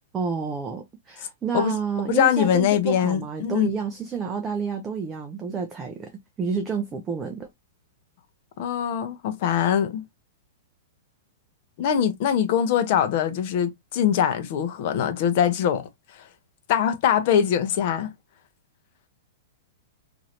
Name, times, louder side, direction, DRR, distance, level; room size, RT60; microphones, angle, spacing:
voice 1, 0.1-6.1 6.4-7.5, right 5 dB, 15° right, 0.4 m, -29 dB
voice 2, 2.1-3.7 8.6-10.0 11.8-15.9 16.7-18.1, left 9 dB, 40° left, 0.6 m, -22 dB
3.1 x 2.5 x 2.8 m
supercardioid pair, 175°, 0 cm